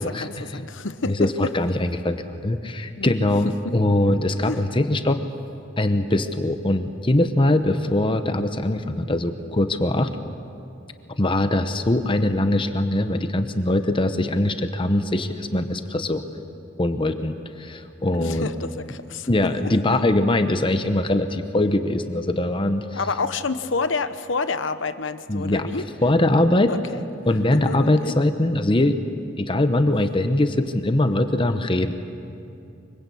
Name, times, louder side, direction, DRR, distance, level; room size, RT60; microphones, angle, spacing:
voice 1, 0.0-1.5 3.0-3.1 3.4-3.8 4.4-4.6 18.2-19.7 22.9-25.9 26.7-27.0 27.5-28.2, left 4 dB, 75° left, 11 dB, 1.0 m, -29 dB
voice 2, 1.1-5.2 5.8-10.1 11.2-16.2 16.8-18.5 19.3-23.0 25.3-25.7 26.0-26.7 27.3-29.0 29.4-31.9, left 1 dB, 25° left, 8 dB, 0.9 m, -22 dB
24.5 x 23.0 x 8.5 m, 2.6 s
head